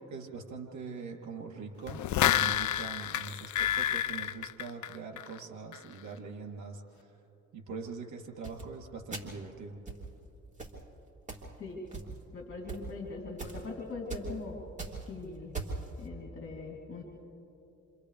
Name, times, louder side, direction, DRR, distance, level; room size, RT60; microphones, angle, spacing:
voice 1, 0.1-7.2 7.5-9.8, right 4 dB, 70° right, 1 dB, 3.2 m, -43 dB
sound 1, 1.9-5.4 5.7-5.8, left 11 dB, 70° left, 0.6 m, -29 dB
sound 2, 8.4-8.6 9.1-9.4 9.9-10.1 10.6-10.8 11.3-11.5 11.9-12.3 12.7-12.8 13.4-13.6 14.1-14.3 14.6-15.1 15.5-15.9, right 4 dB, 25° right, 3.2 m, -39 dB
voice 2, 12.3-14.6 15.0-15.6 16.0-17.0, left 3 dB, 45° left, -2 dB, 3.4 m, -41 dB
29.0 x 26.5 x 3.4 m, 2.9 s
cardioid pair, 90°, 30 cm